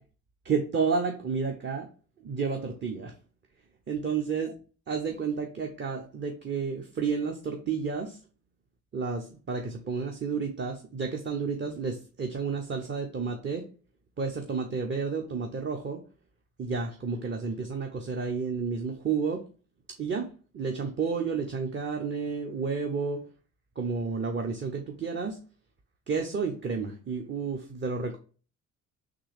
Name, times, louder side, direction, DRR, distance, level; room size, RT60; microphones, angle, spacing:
voice 1, 0.4-1.9 2.2-3.1 3.9-4.5 4.9-8.2 8.9-13.6 14.2-16.0 16.6-19.4 20.0-20.3 20.5-23.2 23.8-25.4 26.1-28.2, right 5 dB, 30° right, 3 dB, 0.7 m, -31 dB
3.7 x 2.8 x 3.3 m, 0.37 s
supercardioid pair, 65°, 36 cm